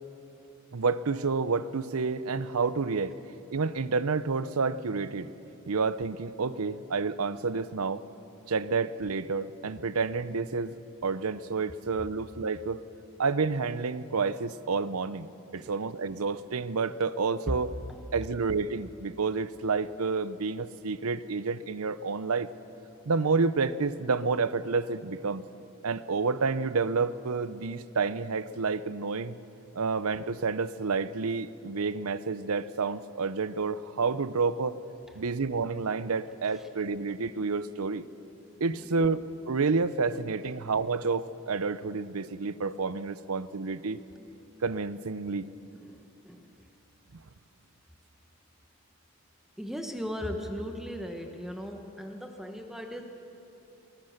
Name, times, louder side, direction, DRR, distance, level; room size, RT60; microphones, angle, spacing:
voice 1, 0.7-3.2 3.5-5.3 5.7-8.0 8.5-12.8 13.2-15.3 15.5-17.7 18.1-22.5 23.1-25.4 25.8-29.4 29.7-34.8 35.1-38.0 38.6-44.0 44.6-45.5 47.1-47.2, right 4 dB, 85° right, 15 dB, 0.7 m, -29 dB
voice 2, 45.7-46.7 49.6-53.0, equal, ahead, 3 dB, 1.2 m, -38 dB
23.0 x 20.5 x 6.6 m, 2.9 s
head